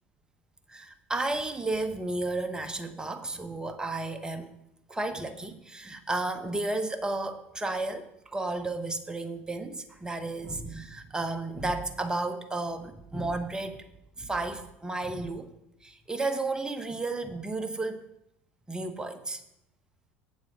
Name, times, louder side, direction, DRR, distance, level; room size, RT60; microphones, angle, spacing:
voice 1, 0.7-4.6 4.9-13.8 14.2-15.5 15.8-18.0 18.7-19.4, right 2 dB, 10° right, 8 dB, 0.9 m, -33 dB
7.7 x 7.2 x 4.9 m, 0.82 s
figure-of-eight pair, 70°, 6 cm